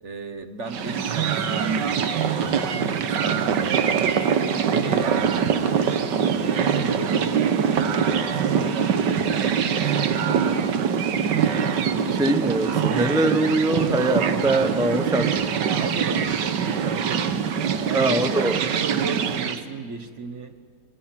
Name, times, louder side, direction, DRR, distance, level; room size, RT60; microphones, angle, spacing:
voice 1, 0.0-4.3 4.7-5.4 5.8-7.4 7.8-10.5 15.7-20.5, right 4 dB, 45° right, 9 dB, 1.4 m, -35 dB
sound 1, 0.7-19.6, right 7 dB, 85° right, 1.7 m, -23 dB
voice 2, 11.7-15.6 17.9-18.6, right 2 dB, 5° right, 8 dB, 0.4 m, -23 dB
27.0 x 21.5 x 5.9 m, 2.2 s
omnidirectional pair, 1.8 m